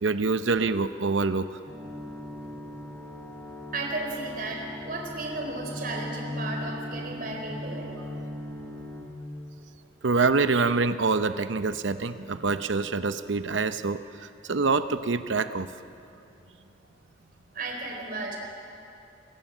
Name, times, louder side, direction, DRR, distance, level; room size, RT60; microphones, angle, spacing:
voice 1, 0.0-1.6 10.0-15.7, right 4 dB, 85° right, 11 dB, 0.7 m, -26 dB
sound 1, 1.7-9.0, left 1 dB, 10° left, 4.7 m, -38 dB
voice 2, 3.7-7.9 17.5-18.4, right 2 dB, 50° right, 1 dB, 4.1 m, -34 dB
27.0 x 21.5 x 7.3 m, 2.7 s
head